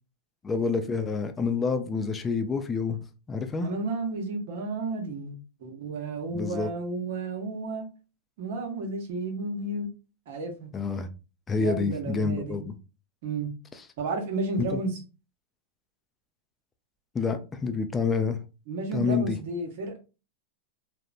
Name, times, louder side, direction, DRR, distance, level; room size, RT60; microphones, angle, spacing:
voice 1, 0.4-3.0 3.3-3.7 6.3-6.7 10.7-11.1 11.5-12.7 14.7-14.8 17.1-18.4 18.9-19.4, left 4 dB, 20° left, 0.4 m, -28 dB
voice 2, 3.6-7.9 8.4-9.9 10.3-10.7 11.5-12.6 13.2-13.5 14.0-15.0 18.7-20.0, right 3 dB, 65° right, 0.8 m, -32 dB
2.9 x 2.1 x 2.4 m
hypercardioid pair, 105°, 0 cm